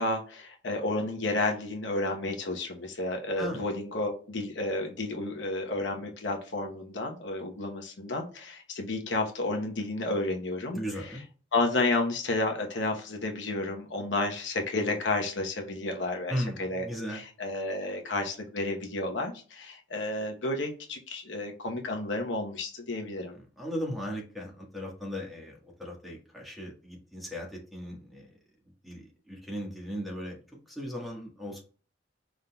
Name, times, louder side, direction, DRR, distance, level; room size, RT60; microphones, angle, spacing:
voice 1, 0.0-11.1 11.5-23.4, left 2 dB, 80° left, 3 dB, 0.9 m, -31 dB
voice 2, 10.7-11.2 16.3-17.2 23.6-28.3 28.8-30.4 30.7-31.6, equal, ahead, -1 dB, 1.4 m, -37 dB
5.3 x 3.6 x 2.2 m, 0.38 s
head